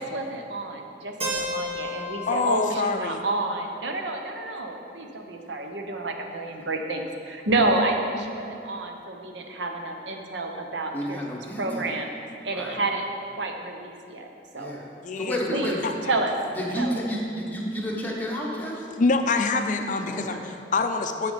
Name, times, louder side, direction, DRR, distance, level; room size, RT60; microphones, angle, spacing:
voice 1, 0.0-11.2 11.6-12.1 12.4-13.1 13.4-14.8 15.5-16.3 16.7-17.0, right 2 dB, 85° right, 3 dB, 0.9 m, -29 dB
Keyboard (musical), 1.2-5.1, left 1 dB, 35° right, 1.1 m, -35 dB
voice 2, 2.3-3.2 15.0-16.1 18.9-21.3, left 3 dB, 45° left, 7 dB, 0.4 m, -26 dB
voice 3, 10.9-11.9 12.5-12.8 14.5-14.9 15.2-15.8 16.5-18.8 20.0-20.4, equal, 10° left, -3 dB, 1.2 m, -31 dB
7.8 x 6.0 x 5.7 m, 2.6 s
head